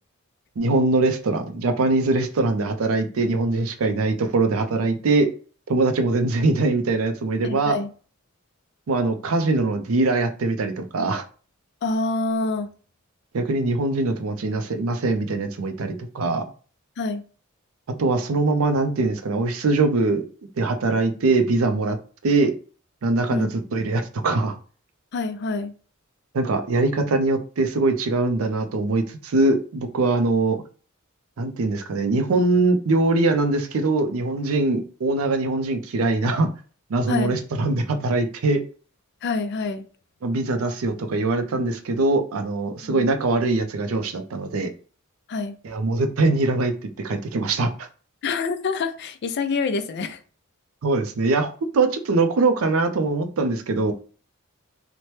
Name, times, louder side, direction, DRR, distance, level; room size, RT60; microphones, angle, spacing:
voice 1, 0.6-5.3 5.7-7.8 8.9-11.2 13.3-16.4 18.0-20.2 20.6-22.0 22.2-22.5 23.0-24.6 26.3-30.6 31.4-36.5 36.9-38.6 40.2-44.7 45.6-47.9 50.8-53.9, right 3 dB, 70° right, 0.5 m, -22 dB
voice 2, 7.4-7.9 11.8-12.7 17.0-17.2 23.3-23.5 25.1-25.7 37.1-37.4 39.2-39.8 42.8-43.1 45.3-45.5 48.2-50.2, left 3 dB, 50° left, 0.3 m, -26 dB
2.9 x 2.1 x 3.1 m
head